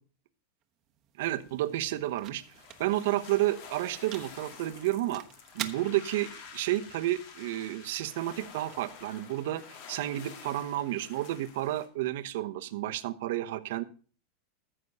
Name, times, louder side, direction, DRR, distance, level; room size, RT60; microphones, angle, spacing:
sound 1, 0.6-8.7, right 12 dB, 35° right, 1.1 m, -47 dB
sound 2, 1.2-11.9, left 6 dB, 55° left, 2.1 m, -50 dB
voice 1, 1.2-2.4 2.8-5.2 5.5-13.8, right 15 dB, 70° right, 9 dB, 1.0 m, -31 dB
14.5 x 6.2 x 5.4 m, 0.40 s
supercardioid pair, 145°, 0 cm